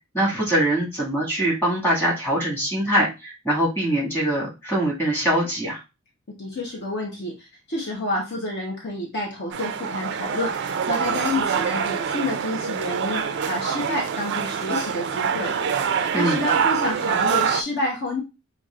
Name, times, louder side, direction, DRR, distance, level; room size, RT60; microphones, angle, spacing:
voice 1, 0.1-5.8 16.1-16.5, right 1 dB, 10° left, -5 dB, 1.8 m, -23 dB
voice 2, 6.3-15.6 15.9-18.2, left 2 dB, 50° left, -1 dB, 0.9 m, -29 dB
sound 1, 9.5-17.6, right 7 dB, 50° right, 0.3 m, -25 dB
5.9 x 2.4 x 2.4 m, 0.26 s
head